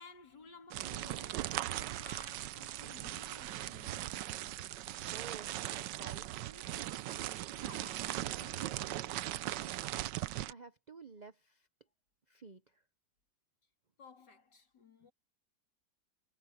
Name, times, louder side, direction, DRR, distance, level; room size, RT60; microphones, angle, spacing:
voice 1, 0.0-4.2 7.6-9.3 14.0-15.1, left 4 dB, 70° left, 3.8 m, -57 dB
sound 1, 0.7-10.5, right 14 dB, 80° right, 1.3 m, -39 dB
voice 2, 5.1-6.7 10.5-11.7 12.3-12.8, right 5 dB, 55° right, 0.4 m, -52 dB
omnidirectional pair, 1.9 m